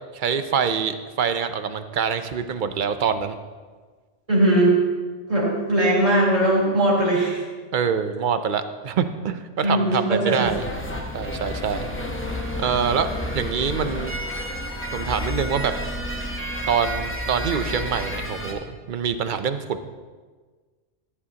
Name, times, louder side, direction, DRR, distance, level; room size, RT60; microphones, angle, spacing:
voice 1, 0.1-3.4 7.7-10.6 11.1-11.9 12.6-14.1 14.9-15.7 16.7-19.9, right 7 dB, 55° right, 10 dB, 0.7 m, -25 dB
voice 2, 4.3-4.7 5.3-7.4 9.6-10.5, right 1 dB, 30° right, -6 dB, 3.7 m, -20 dB
sound 1, 10.4-18.5, equal, 10° left, 0.9 m, -30 dB
14.0 x 10.5 x 2.9 m, 1.4 s
omnidirectional pair, 1.1 m